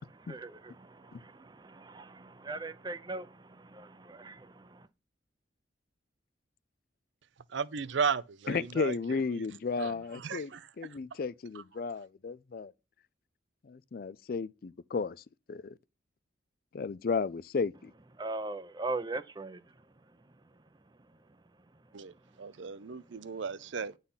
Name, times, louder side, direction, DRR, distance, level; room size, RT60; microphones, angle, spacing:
voice 1, 0.3-4.9 18.2-19.6, right 2 dB, 20° right, 0.6 m, -40 dB
voice 2, 7.5-9.4 9.8-10.7 21.9-24.0, right 6 dB, 75° right, 0.5 m, -35 dB
voice 3, 8.5-10.5 10.8-12.7 13.6-15.2 15.5-15.7 16.7-17.9, left 4 dB, 50° left, 0.4 m, -34 dB
10.0 x 4.1 x 5.5 m
head